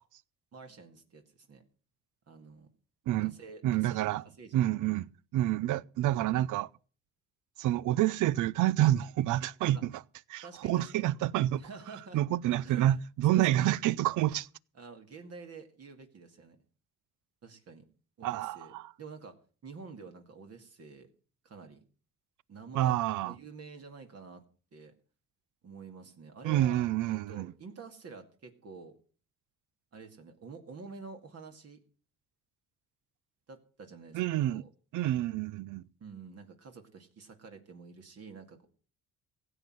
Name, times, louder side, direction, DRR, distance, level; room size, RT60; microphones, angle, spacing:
voice 1, 0.5-1.6 2.3-2.7 3.2-4.1 4.4-4.9 9.7-9.8 10.4-11.1 11.6-13.0 13.3-13.6 14.7-16.6 17.4-17.8 18.2-19.4 19.6-21.1 21.4-21.8 22.5-22.9 23.2-24.4 24.7-24.9 25.6-28.9 29.9-31.8 33.5-34.2 34.5-34.7 36.0-38.7, right 4 dB, 55° right, 2.3 m, -49 dB
voice 2, 3.1-3.4 3.6-4.2 4.5-5.1 5.3-6.7 7.6-9.9 10.3-11.6 12.1-14.5 18.2-18.9 22.7-23.3 26.4-27.5 34.1-34.6 34.9-35.8, right 13 dB, 80° right, 0.6 m, -28 dB
16.0 x 7.9 x 7.8 m
cardioid pair, 90°, 30 cm